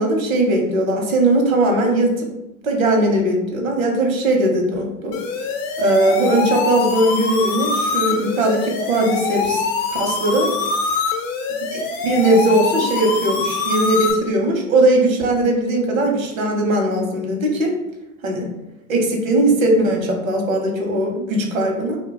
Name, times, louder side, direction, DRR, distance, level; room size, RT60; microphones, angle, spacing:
voice 1, 0.0-2.3 2.6-5.2 5.8-10.5 11.7-17.7 18.2-18.5 18.9-22.0, right 1 dB, 75° right, 2 dB, 0.9 m, -19 dB
sound 1, 5.1-14.1, left 4 dB, 45° left, 0.6 m, -24 dB
2.3 x 2.2 x 3.9 m, 0.93 s
hypercardioid pair, 95°, 40 cm